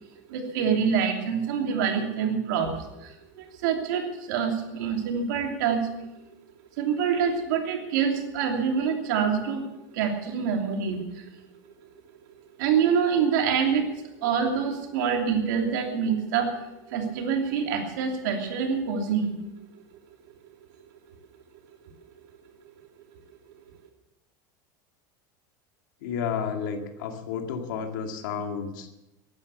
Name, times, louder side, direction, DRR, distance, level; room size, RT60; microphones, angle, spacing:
voice 1, 0.3-5.9 6.8-9.7 9.9-11.3 12.6-13.9 14.2-16.6 16.9-19.3, right 6 dB, 75° right, 3 dB, 2.9 m, -26 dB
voice 2, 26.0-28.9, left 6 dB, 85° left, 4 dB, 2.3 m, -31 dB
15.5 x 11.5 x 6.8 m, 0.95 s
supercardioid pair, 175°, 10 cm